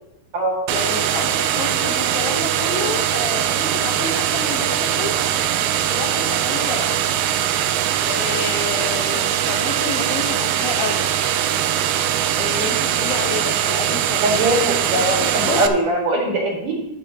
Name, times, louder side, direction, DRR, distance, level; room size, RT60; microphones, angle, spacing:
voice 1, 0.7-5.2 5.7-7.0 8.0-11.1 12.4-14.2 14.9-15.6, left 4 dB, 75° left, 3 dB, 2.9 m, -29 dB
sound 1, 0.7-15.7, right 10 dB, 85° right, 2.5 m, -21 dB
voice 2, 14.2-16.7, right 1 dB, 60° right, -1 dB, 3.5 m, -21 dB
16.5 x 7.0 x 2.9 m, 0.89 s
omnidirectional pair, 4.4 m